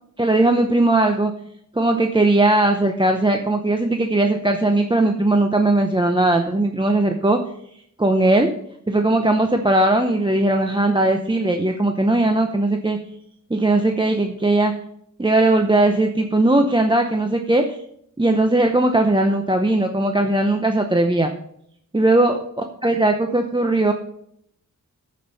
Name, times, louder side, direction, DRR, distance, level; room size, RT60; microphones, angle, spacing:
voice 1, 0.2-1.3 1.8-7.4 8.0-8.5 8.9-13.0 13.5-14.7 15.2-17.8 18.2-21.3 21.9-23.9, right 2 dB, 15° right, 4 dB, 0.7 m, -18 dB
13.5 x 5.4 x 4.1 m, 0.71 s
wide cardioid pair, 70°, 32 cm